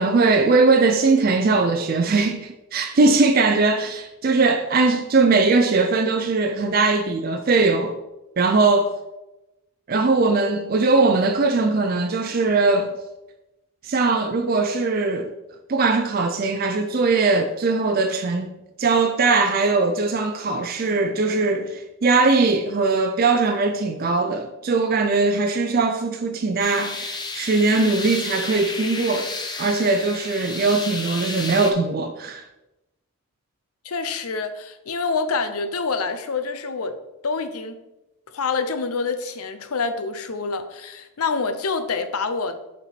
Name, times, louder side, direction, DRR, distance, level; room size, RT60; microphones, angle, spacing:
voice 1, 0.0-8.0 8.4-8.9 9.9-12.9 13.8-15.3 15.7-18.5 18.8-29.3 29.6-32.4, right 3 dB, 40° right, 0.4 m, -20 dB
sound 1, 26.6-31.7, left 3 dB, 20° left, 0.5 m, -32 dB
voice 2, 33.8-37.8 38.3-42.6, left 4 dB, 85° left, 0.6 m, -27 dB
6.8 x 4.4 x 4.3 m
head